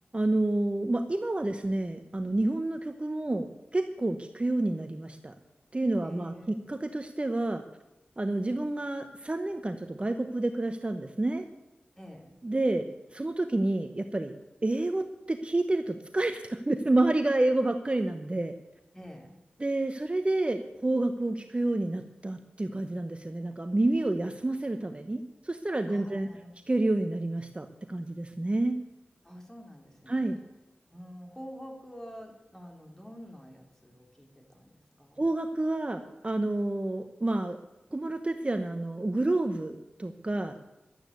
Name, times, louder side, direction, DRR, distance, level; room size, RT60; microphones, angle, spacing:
voice 1, 0.1-5.3 5.7-7.6 8.2-11.4 12.4-14.4 14.6-18.5 19.6-26.3 26.7-28.8 30.1-30.4 35.2-37.6 37.9-40.6, right 2 dB, 30° right, 7 dB, 1.0 m, -29 dB
voice 2, 6.0-6.6 12.0-12.3 18.9-19.3 25.9-26.6 29.2-30.3 30.9-35.3, equal, 10° left, 2 dB, 3.8 m, -47 dB
12.0 x 8.8 x 8.3 m, 0.99 s
cardioid pair, 45°, 4 cm